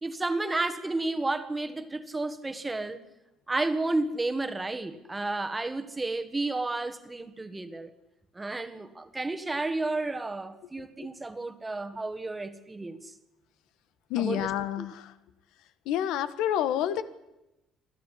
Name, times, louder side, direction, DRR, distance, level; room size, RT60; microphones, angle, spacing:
voice 1, 0.0-3.0 3.5-7.9 8.3-13.1 14.2-14.5 14.8-14.9, right 2 dB, 10° right, 10 dB, 1.6 m, -32 dB
voice 2, 14.1-15.1 15.8-17.0, left 11 dB, 85° left, 13 dB, 1.6 m, -28 dB
26.5 x 16.0 x 10.0 m, 0.94 s
cardioid pair, 155°, 0 cm